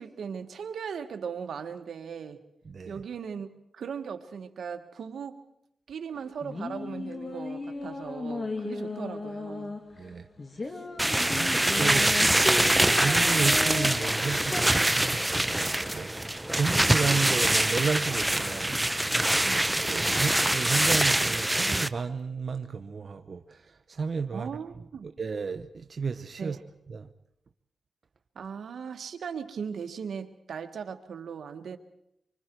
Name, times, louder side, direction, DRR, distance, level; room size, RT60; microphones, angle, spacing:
voice 1, 0.0-2.4 2.9-5.4 5.9-9.8 19.4-19.6 24.3-25.1 26.4-26.6 28.3-31.8, right 6 dB, 90° right, 1.5 m, -38 dB
voice 2, 2.7-3.0 10.0-10.3 10.6-10.8 11.3-24.5 25.0-26.6 26.9-27.1, right 5 dB, 55° right, 0.8 m, -33 dB
sound 1, 6.1-14.7, left 3 dB, 40° left, 2.1 m, -36 dB
sound 2, 11.0-21.9, right 1 dB, 10° right, 0.7 m, -24 dB
sound 3, 15.1-15.4 15.6-15.9 16.7-17.2 17.6-17.8 19.0-19.6 19.9-20.0, right 3 dB, 25° right, 5.0 m, -46 dB
25.0 x 25.0 x 4.6 m
wide cardioid pair, 90°, 0 cm